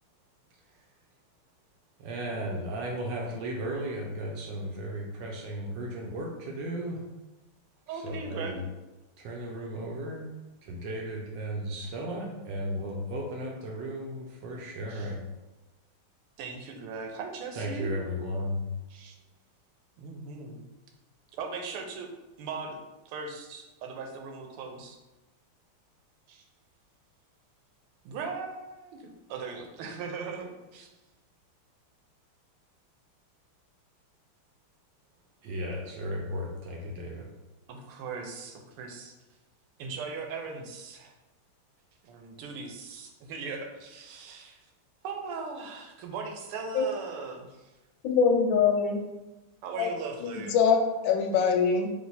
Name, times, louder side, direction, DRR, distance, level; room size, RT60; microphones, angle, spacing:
voice 1, 2.0-7.0 7.9-8.6 9.2-10.3 10.6-15.2 17.6-18.7 35.4-37.3, equal, 75° right, -1 dB, 1.1 m, -35 dB
voice 2, 7.9-8.6 14.9-15.1 16.4-17.9 18.9-19.1 20.0-20.6 21.3-22.1 22.4-22.8 23.0-25.0 26.3-26.4 28.0-30.9 37.7-39.2 39.8-41.1 42.0-44.6 45.0-47.7 49.6-50.5, right 4 dB, 90° right, 3 dB, 1.6 m, -39 dB
voice 3, 48.0-49.0 49.8-49.9 50.2-50.8 51.0-51.9, left 6 dB, 75° left, 3 dB, 1.2 m, -23 dB
3.2 x 3.1 x 4.0 m, 1.1 s
omnidirectional pair, 2.4 m